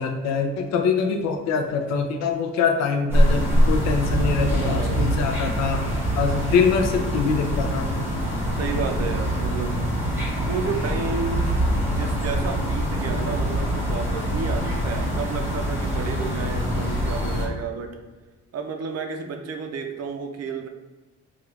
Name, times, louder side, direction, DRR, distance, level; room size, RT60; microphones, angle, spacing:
voice 1, 0.0-5.8 6.1-7.9, left 5 dB, 60° left, 4 dB, 0.4 m, -24 dB
sound 1, 3.1-17.5, equal, 5° right, 1.0 m, -24 dB
voice 2, 4.6-5.1 8.5-10.2 10.4-18.0 18.5-20.7, right 5 dB, 55° right, 4 dB, 0.5 m, -32 dB
3.5 x 2.4 x 3.1 m, 1.3 s
cardioid pair, 90°, 30 cm